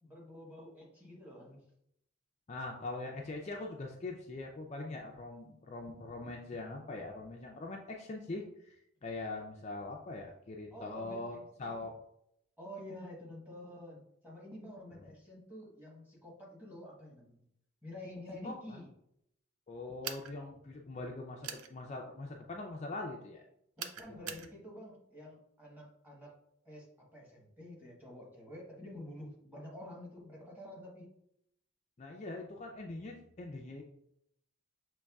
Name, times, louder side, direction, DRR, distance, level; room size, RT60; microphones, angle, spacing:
voice 1, 0.0-1.6 10.7-11.8 12.6-17.4 17.8-18.9 23.8-26.4 26.6-31.1, left 1 dB, 10° right, -3 dB, 1.1 m, -49 dB
voice 2, 2.5-12.0 14.9-15.0 18.4-18.8 19.7-23.4 24.1-24.4 32.0-33.8, left 2 dB, 30° left, 0 dB, 0.4 m, -42 dB
sound 1, 20.0-20.3 21.4-21.7 23.8-24.5, right 8 dB, 80° right, 0.5 m, -41 dB
6.3 x 3.1 x 2.3 m, 0.74 s
head